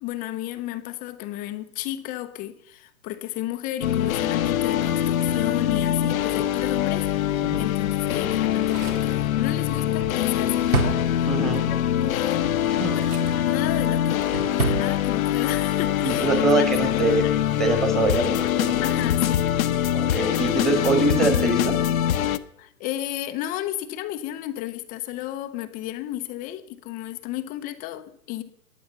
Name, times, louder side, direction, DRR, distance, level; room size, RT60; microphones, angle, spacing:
voice 1, 0.0-12.6 12.9-13.1 13.4-17.4 18.8-19.5 22.6-28.4, left 14 dB, 20° left, 9 dB, 0.7 m, -33 dB
sound 1, 3.8-22.4, left 11 dB, 65° left, 0.9 m, -23 dB
Drawer open or close, 8.4-11.7 12.5-13.5 13.9-14.9 15.2-15.3, right 3 dB, 75° right, 2.8 m, -30 dB
voice 2, 11.2-11.7 12.8-12.9 16.0-17.3 17.6-18.7 19.9-21.8, right 3 dB, 10° right, 5 dB, 1.7 m, -24 dB
15.0 x 10.0 x 5.8 m, 0.71 s
hypercardioid pair, 135°, 45 cm